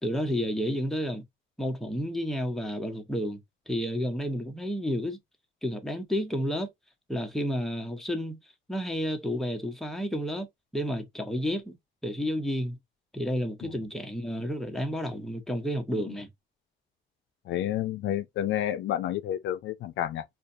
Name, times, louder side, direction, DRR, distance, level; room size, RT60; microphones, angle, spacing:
voice 1, 0.0-1.2 1.6-3.4 3.7-5.2 5.6-6.7 7.1-8.4 8.7-10.5 10.7-11.7 12.0-12.8 13.1-16.3, equal, ahead, 1.0 m, -31 dB
voice 2, 17.5-20.2, left 11 dB, 75° left, 0.4 m, -30 dB
4.8 x 2.3 x 2.7 m
cardioid pair, 90°, 20 cm